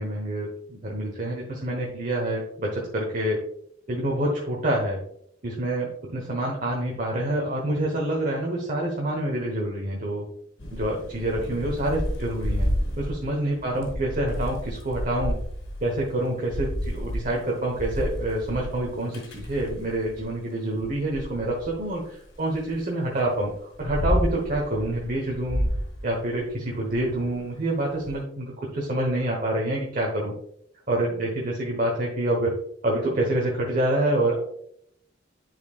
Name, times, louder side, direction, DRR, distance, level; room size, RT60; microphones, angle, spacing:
voice 1, 0.0-3.4 3.9-5.0 5.4-10.2 10.7-12.7 13.0-15.3 15.8-23.5 23.8-25.6 26.0-30.3 30.9-32.5 32.8-34.4, right 1 dB, 45° right, -1 dB, 1.1 m, -27 dB
Thunder / Rain, 10.6-20.3 20.8-22.7 23.3-28.1, equal, 85° left, 1.9 m, -31 dB
10.5 x 4.5 x 2.4 m, 0.70 s
head